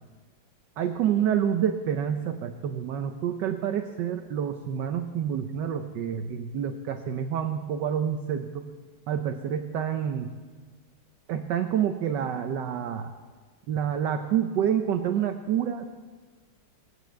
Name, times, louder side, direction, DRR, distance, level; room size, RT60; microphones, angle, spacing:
voice 1, 0.8-8.7 9.1-10.3 11.3-13.1 13.7-15.9, right 9 dB, 65° right, 7 dB, 1.3 m, -28 dB
19.0 x 9.6 x 7.5 m, 1.5 s
omnidirectional pair, 2.2 m